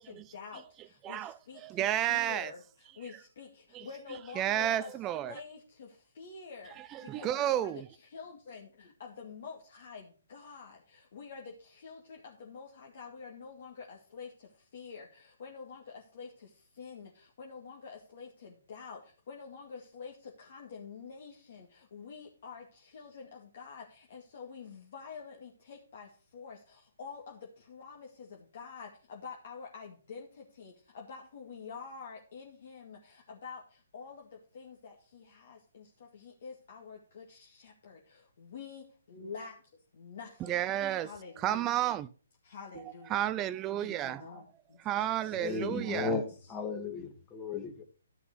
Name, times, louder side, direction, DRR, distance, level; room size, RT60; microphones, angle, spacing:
voice 1, 0.0-39.6 39.9-40.7 41.0-41.8 42.4-43.2 43.8-44.8 45.2-46.5, left 5 dB, 50° left, 2.1 m, -48 dB
voice 2, 1.6-2.5 3.7-3.9 4.4-5.3 6.9-7.8 40.5-41.1 41.4-42.1 43.1-44.2 44.9-46.2, right 12 dB, 20° right, 0.4 m, -31 dB
voice 3, 45.3-47.8, left 4 dB, 15° left, 1.8 m, -35 dB
12.0 x 6.0 x 6.0 m
figure-of-eight pair, 135°, 0 cm